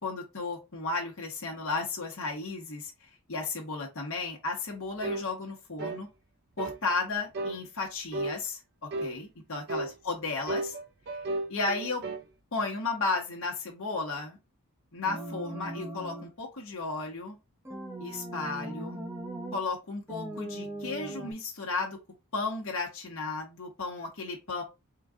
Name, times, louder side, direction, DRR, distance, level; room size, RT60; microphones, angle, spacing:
voice 1, 0.0-6.1 6.6-10.8 11.5-12.0 12.5-14.4 14.9-17.4 18.0-19.0 19.5-22.0 22.3-24.6, left 3 dB, 65° left, 1.2 m, -34 dB
sound 1, 5.0-5.3 5.8-6.1 6.6-6.8 7.3-7.6 8.1-8.4 8.9-9.2 9.7-9.9 10.5-12.3, right 2 dB, 50° right, 0.5 m, -34 dB
sound 2, 15.0-16.3 17.6-19.6 20.1-21.3, right 1 dB, 10° right, 0.8 m, -39 dB
3.8 x 2.5 x 3.6 m
head